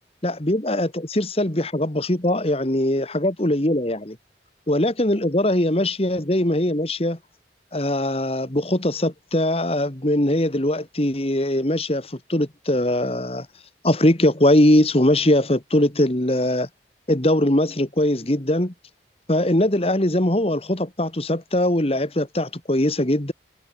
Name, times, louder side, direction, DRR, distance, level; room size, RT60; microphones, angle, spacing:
voice 1, 0.2-4.2 4.7-7.2 7.7-13.5 13.8-16.7 17.1-18.7 19.3-23.3, left 1 dB, 30° left, 1.8 m, -21 dB
head